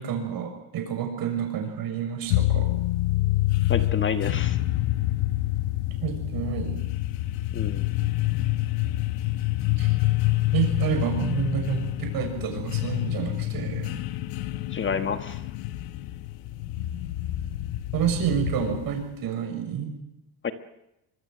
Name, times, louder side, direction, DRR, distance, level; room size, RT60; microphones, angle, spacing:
voice 1, 0.0-2.7 6.0-6.8 9.8-10.0 10.5-14.0 17.9-19.9, right 8 dB, 50° right, 5 dB, 6.8 m, -29 dB
sound 1, 2.3-19.1, left 16 dB, 85° left, 1.4 m, -27 dB
voice 2, 3.7-4.6 7.5-7.9 14.7-15.4 20.4-20.5, left 6 dB, 25° left, 9 dB, 1.4 m, -29 dB
24.0 x 23.5 x 7.9 m, 0.86 s
cardioid pair, 150°, 43 cm